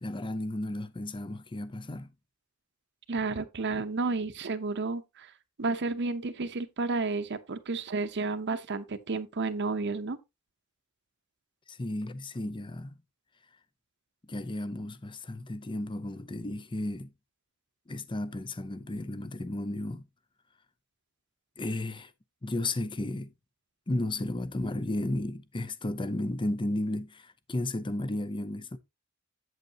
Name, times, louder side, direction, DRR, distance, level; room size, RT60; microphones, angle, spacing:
voice 1, 0.0-2.1 11.7-12.9 14.3-17.1 17.9-20.0 21.6-22.1 22.4-23.3 23.9-28.8, left 1 dB, 25° left, 0.6 m, -33 dB
voice 2, 3.1-5.3 5.6-10.2, right 3 dB, 55° right, 0.8 m, -31 dB
7.9 x 7.9 x 2.8 m
head